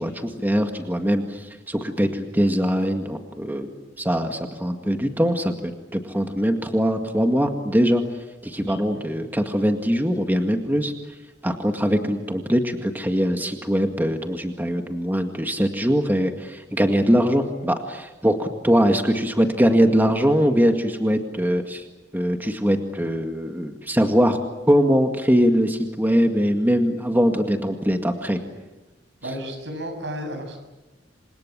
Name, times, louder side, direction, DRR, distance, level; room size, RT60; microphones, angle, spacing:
voice 1, 0.0-3.7 4.0-8.0 8.4-10.9 11.4-21.8 22.1-24.4 24.7-28.4, equal, 10° right, 5 dB, 1.9 m, -22 dB
voice 2, 8.9-9.3 29.2-30.6, equal, 80° right, 6 dB, 7.6 m, -33 dB
28.0 x 26.5 x 7.6 m, 1.1 s
head